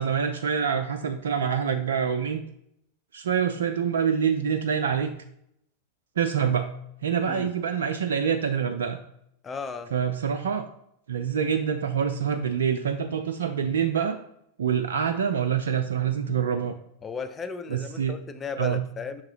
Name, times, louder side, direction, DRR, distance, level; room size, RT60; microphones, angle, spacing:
voice 1, 0.0-2.4 3.1-5.1 6.2-6.7 7.0-9.0 9.9-10.7 11.1-14.2 14.6-16.8 17.7-18.2 18.6-18.8, right 7 dB, 65° right, 6 dB, 0.4 m, -26 dB
voice 2, 9.4-9.9 17.0-19.2, left 5 dB, 20° left, 9 dB, 0.5 m, -35 dB
5.8 x 3.8 x 4.7 m, 0.73 s
figure-of-eight pair, 90°, 0 cm